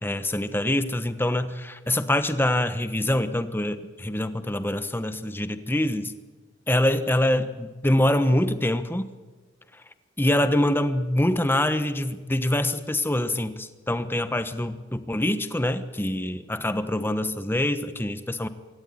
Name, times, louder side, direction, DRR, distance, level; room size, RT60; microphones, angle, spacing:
voice 1, 0.0-6.1 6.7-9.1 10.2-18.5, left 1 dB, 10° left, 10 dB, 1.1 m, -25 dB
25.5 x 13.5 x 9.6 m, 1.3 s
head